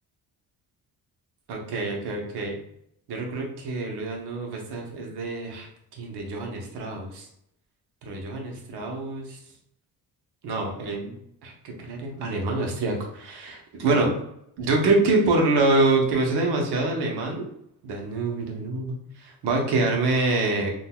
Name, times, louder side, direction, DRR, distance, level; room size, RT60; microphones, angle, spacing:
voice 1, 1.5-2.6 3.1-7.3 8.0-9.4 10.4-11.1 11.4-14.1 14.6-17.4 17.8-20.7, right 2 dB, 70° right, 1 dB, 0.9 m, -26 dB
3.7 x 2.3 x 2.2 m, 0.75 s
cardioid pair, 85°, 41 cm